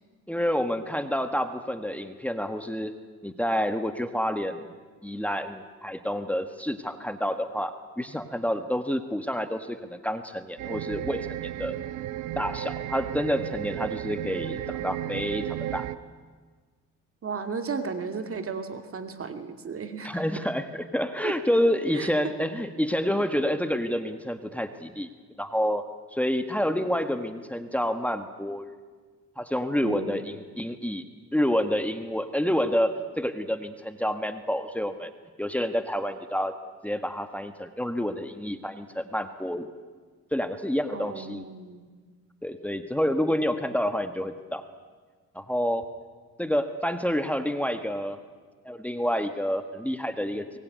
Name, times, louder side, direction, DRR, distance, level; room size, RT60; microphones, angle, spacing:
voice 1, 0.3-2.9 3.2-4.6 5.0-11.3 11.6-11.7 12.4-15.9 20.0-25.1 25.4-25.8 26.1-28.7 29.4-31.0 31.3-35.1 35.4-36.5 36.8-39.7 40.3-41.4 42.4-44.6 45.3-45.9 46.4-48.2 48.6-50.6, equal, 5° left, 8 dB, 1.5 m, -28 dB
sound 1, 10.6-16.0, right 13 dB, 85° right, 0.9 m, -34 dB
voice 2, 17.2-20.4 21.2-21.3 21.9-22.1 29.8-30.2 40.9-41.9, right 5 dB, 45° right, 7 dB, 2.7 m, -34 dB
23.5 x 21.0 x 9.5 m, 1.5 s
cardioid pair, 90°, 30 cm